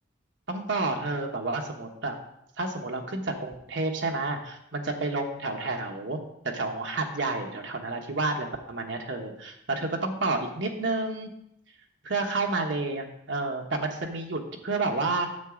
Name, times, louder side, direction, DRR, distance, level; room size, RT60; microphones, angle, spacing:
voice 1, 0.5-2.1 2.6-6.2 6.4-11.3 12.0-15.3, right 3 dB, 65° right, 2 dB, 1.2 m, -30 dB
9.1 x 7.1 x 3.8 m, 0.79 s
head